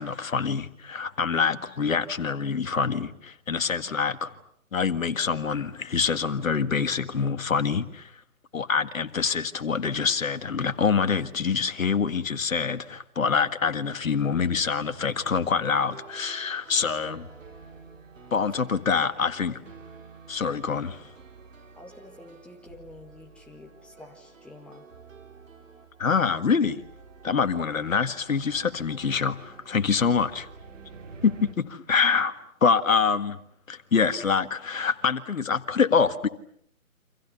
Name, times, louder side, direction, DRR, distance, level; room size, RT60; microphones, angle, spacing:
voice 1, 0.0-4.3 4.7-8.1 8.5-17.3 18.3-19.6 20.3-21.1 26.0-26.8 27.2-30.5 31.2-33.4 33.7-36.3, left 5 dB, 65° left, 1.9 m, -25 dB
sound 1, 14.3-31.5, right 5 dB, 60° right, 4.0 m, -49 dB
voice 2, 21.8-24.9, left 2 dB, ahead, 1.8 m, -48 dB
29.5 x 26.0 x 6.9 m
figure-of-eight pair, 145°, 43 cm